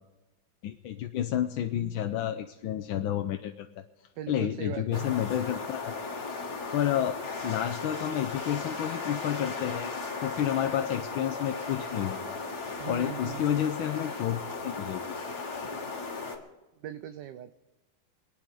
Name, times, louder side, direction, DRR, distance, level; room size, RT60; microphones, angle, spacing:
voice 1, 0.6-3.8 4.3-5.9 6.7-7.2 7.4-9.9 10.2-12.4 12.8-15.2, left 11 dB, 85° left, 5 dB, 1.4 m, -30 dB
voice 2, 4.2-5.1 12.8-13.5 16.8-17.6, right 11 dB, 70° right, 11 dB, 1.2 m, -40 dB
sound 1, 4.9-16.4, left 4 dB, 55° left, 2.5 m, -36 dB
26.0 x 9.5 x 4.8 m, 1.1 s
omnidirectional pair, 2.1 m